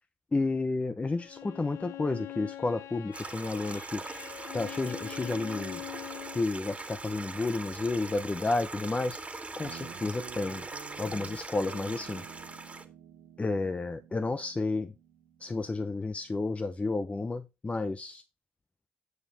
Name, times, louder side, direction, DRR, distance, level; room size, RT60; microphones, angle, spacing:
voice 1, 0.3-4.0 4.5-5.8 6.3-9.2 9.6-10.6 11.0-12.2 13.4-14.9 15.4-18.2, left 3 dB, 25° left, 10 dB, 0.8 m, -31 dB
Bowed string instrument, 1.1-6.5, left 14 dB, 75° left, 0.9 m, -43 dB
Stream, 3.1-12.8, right 3 dB, 25° right, 2.0 m, -41 dB
Guitar, 9.6-16.3, right 8 dB, 80° right, 2.1 m, -50 dB
9.7 x 7.2 x 3.4 m, 0.26 s
supercardioid pair, 55°, 5 cm